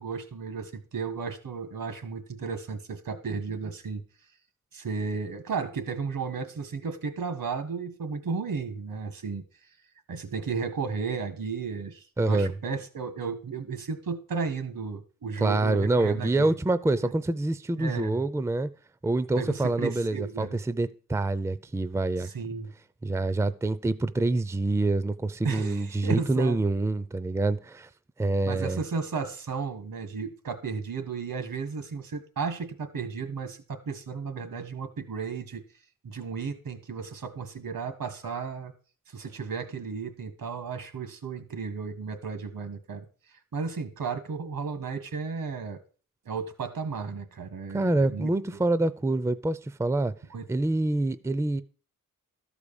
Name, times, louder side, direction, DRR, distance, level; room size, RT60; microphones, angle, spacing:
voice 1, 0.0-4.0 4.7-9.4 10.1-16.5 17.0-17.1 17.8-18.2 19.4-20.6 22.2-22.7 25.4-26.6 28.5-35.6 36.0-38.7 39.1-43.0 43.5-45.8 46.2-48.3 50.3-50.4, right 5 dB, 85° right, 1.8 m, -34 dB
voice 2, 12.2-12.5 15.4-18.7 19.0-22.3 23.0-27.9 28.2-28.8 47.7-50.1 50.5-51.6, right 2 dB, 10° right, 0.4 m, -26 dB
13.0 x 5.0 x 7.0 m
wide cardioid pair, 110°, 33 cm